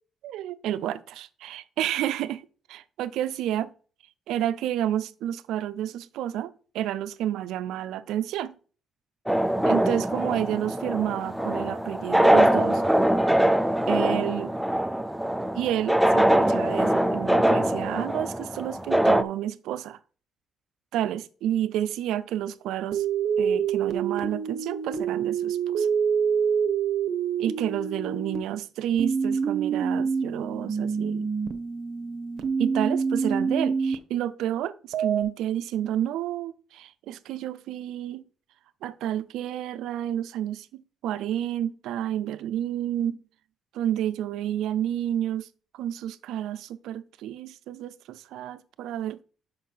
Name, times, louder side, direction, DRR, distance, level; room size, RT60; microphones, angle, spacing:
voice 1, 0.2-3.7 4.3-8.5 9.6-12.8 13.9-14.5 15.5-20.0 20.9-23.0 23.4-25.9 27.4-31.3 32.6-38.2 38.8-43.2 43.7-45.5 45.7-49.2, right 11 dB, 90° right, 0.4 m, -30 dB
sound 1, 9.3-19.2, right 1 dB, 5° right, 0.5 m, -23 dB
sound 2, 22.9-28.4 29.0-34.0 34.9-35.2, right 6 dB, 65° right, 0.9 m, -26 dB
5.7 x 5.3 x 5.5 m
cardioid pair, 90°, 0 cm